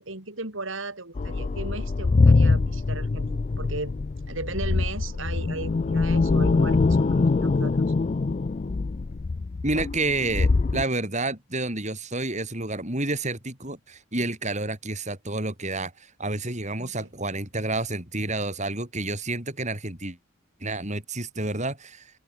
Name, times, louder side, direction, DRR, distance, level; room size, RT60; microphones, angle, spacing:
voice 1, 0.0-3.9 4.3-7.9 16.8-17.1, right 2 dB, 65° right, 3.7 m, -36 dB
sound 1, 1.2-10.8, left 3 dB, 35° left, 0.4 m, -23 dB
voice 2, 9.6-20.2 20.6-22.1, right 2 dB, 35° right, 7.1 m, -29 dB
head